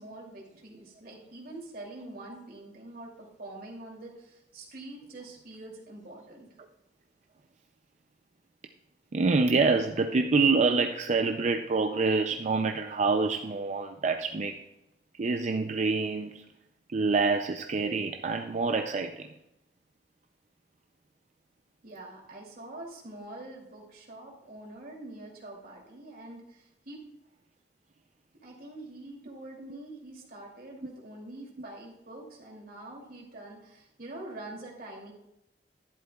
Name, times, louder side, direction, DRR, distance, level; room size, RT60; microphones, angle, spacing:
voice 1, 0.0-3.1 3.4-6.5 21.8-27.0 28.4-35.1, right 2 dB, 55° right, -1 dB, 2.7 m, -45 dB
voice 2, 9.1-14.6 15.2-16.4 16.9-19.3, right 4 dB, 40° right, 5 dB, 0.4 m, -26 dB
11.5 x 10.5 x 2.3 m, 0.87 s
head